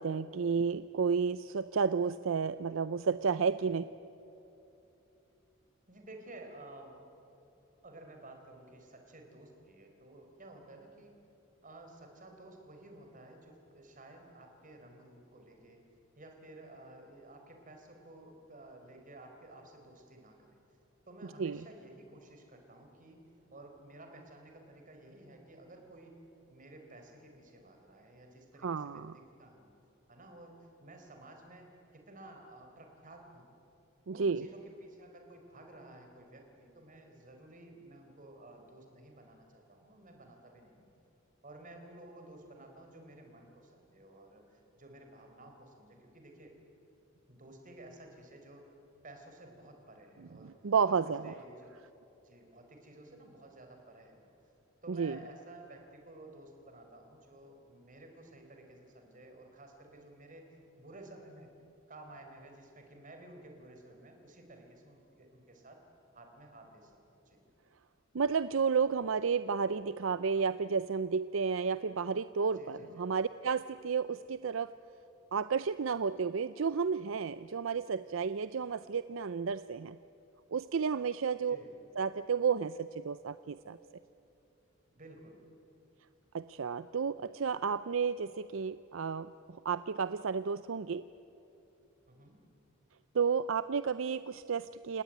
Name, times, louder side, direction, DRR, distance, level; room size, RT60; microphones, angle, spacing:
voice 1, 0.0-3.8 21.4-21.6 28.6-29.2 34.1-34.5 50.4-51.3 54.9-55.2 68.1-74.7 75.3-80.0 80.5-81.6 82.0-83.8 86.3-91.1 93.1-95.0, right 5 dB, 70° right, 14 dB, 0.5 m, -32 dB
voice 2, 5.9-7.0 7.8-11.1 11.6-15.8 16.2-20.5 21.1-23.2 23.5-26.2 26.5-29.7 30.1-33.5 34.1-40.9 41.4-46.5 47.3-48.7 49.0-50.7 51.2-51.8 52.2-54.2 54.8-61.5 61.9-65.8 66.1-67.0 67.3-67.4 72.5-73.1 81.5-81.8 84.9-85.4 92.1-92.4, right 1 dB, 40° right, 4 dB, 4.4 m, -53 dB
29.5 x 18.0 x 9.3 m, 2.9 s
head